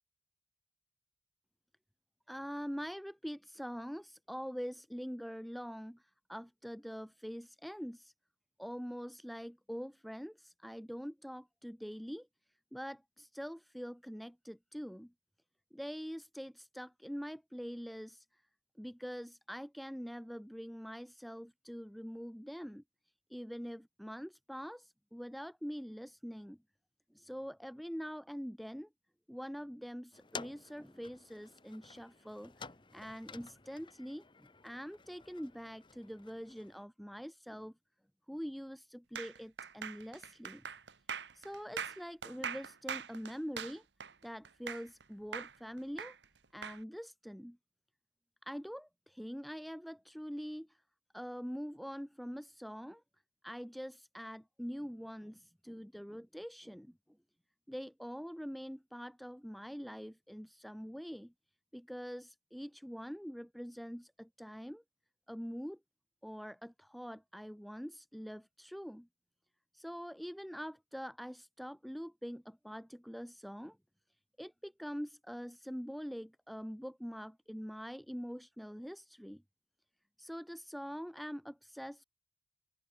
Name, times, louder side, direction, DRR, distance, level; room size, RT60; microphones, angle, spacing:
voice 1, 2.3-8.1 8.6-12.3 12.7-15.1 15.7-18.4 18.8-22.8 23.3-26.6 27.1-28.9 29.3-32.7 32.9-37.7 38.3-40.6 41.3-43.8 44.2-46.2 46.5-47.6 48.4-50.8 51.1-53.0 53.4-57.0 57.7-61.3 61.7-64.8 65.3-65.8 66.2-69.1 69.7-73.8 74.4-79.4 80.2-82.0, equal, ahead, 0.4 m, -44 dB
sound 1, 30.1-36.9, left 4 dB, 25° left, 1.3 m, -52 dB
sound 2, 39.2-45.0 45.3-46.8, right 7 dB, 80° right, 1.4 m, -42 dB
open air
head